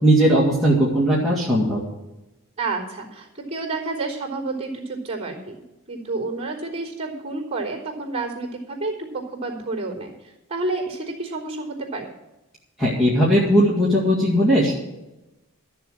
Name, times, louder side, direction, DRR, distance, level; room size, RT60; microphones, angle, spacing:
voice 1, 0.0-1.8 12.8-14.8, equal, ahead, -8 dB, 2.1 m, -18 dB
voice 2, 2.6-5.5 5.9-10.1 10.5-12.1, right 3 dB, 30° right, -4 dB, 3.7 m, -29 dB
13.0 x 7.1 x 7.6 m, 0.98 s
head